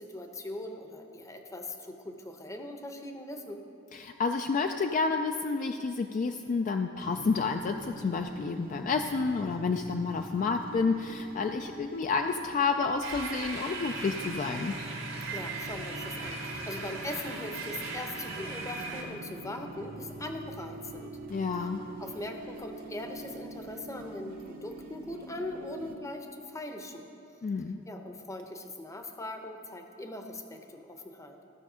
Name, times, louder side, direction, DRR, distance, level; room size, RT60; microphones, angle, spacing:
voice 1, 0.0-3.6 15.3-21.1 22.0-27.1 27.9-31.4, left 1 dB, 15° left, 5 dB, 0.7 m, -40 dB
voice 2, 3.9-14.7 21.3-21.8 27.4-27.8, left 4 dB, 40° left, 5 dB, 0.3 m, -30 dB
sound 1, 7.0-25.9, right 1 dB, 45° right, 0.9 m, -44 dB
sound 2, 13.0-19.0, right 3 dB, 85° right, 1.8 m, -39 dB
14.5 x 6.4 x 4.9 m, 2.8 s
head